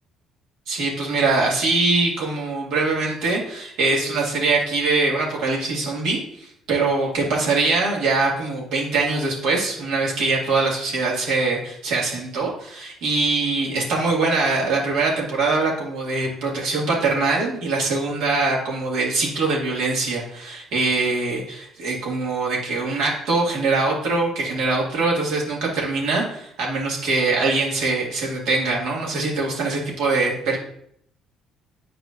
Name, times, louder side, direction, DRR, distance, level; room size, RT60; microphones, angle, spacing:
voice 1, 0.7-30.6, right 3 dB, 80° right, -3 dB, 2.1 m, -23 dB
9.8 x 4.8 x 2.6 m, 0.68 s
supercardioid pair, 75°, 0 cm